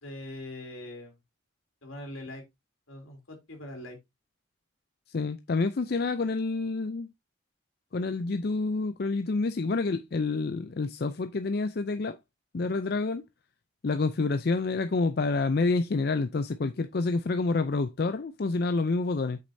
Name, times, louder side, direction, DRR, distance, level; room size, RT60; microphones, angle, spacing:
voice 1, 0.0-1.2 1.8-2.4 2.9-4.0, left 1 dB, 80° left, 3.1 m, -42 dB
voice 2, 5.1-7.1 7.9-12.2 12.5-13.2 13.8-19.4, left 3 dB, 50° left, 0.4 m, -28 dB
8.3 x 6.5 x 2.7 m
head